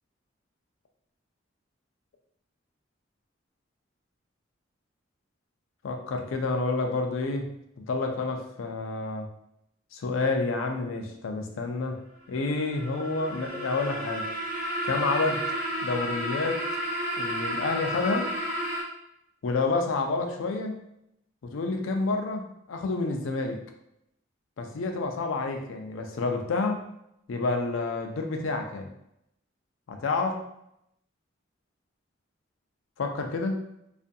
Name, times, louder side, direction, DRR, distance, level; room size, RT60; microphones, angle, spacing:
voice 1, 5.8-7.5 7.8-9.3 9.9-12.0 12.3-14.3 14.8-15.4 15.8-16.6 17.2-18.3 19.4-20.8 21.4-23.6 24.6-26.8 27.3-28.9 29.9-30.3 33.0-33.7, left 3 dB, 80° left, 4 dB, 0.4 m, -29 dB
sound 1, 12.5-18.8, equal, 45° right, 0.6 m, -32 dB
2.6 x 2.5 x 2.2 m, 0.80 s
head